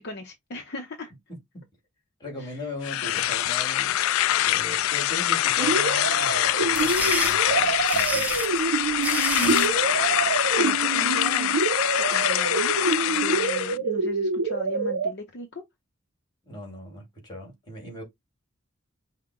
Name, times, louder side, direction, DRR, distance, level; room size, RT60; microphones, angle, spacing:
voice 1, 0.0-1.1 2.4-2.6 9.4-9.8 10.6-11.7 12.1-12.7 13.1-15.5, equal, 50° left, 0.7 m, -36 dB
voice 2, 1.3-1.6 2.2-4.0 4.4-8.5 9.4-9.6 16.5-18.0, left 1 dB, 20° left, 2.2 m, -39 dB
sound 1, 2.8-13.8, left 13 dB, 75° left, 0.3 m, -24 dB
sound 2, 5.6-15.1, right 4 dB, 85° right, 0.5 m, -27 dB
sound 3, 6.5-9.8, right 2 dB, 5° right, 0.5 m, -31 dB
5.7 x 2.2 x 3.6 m
head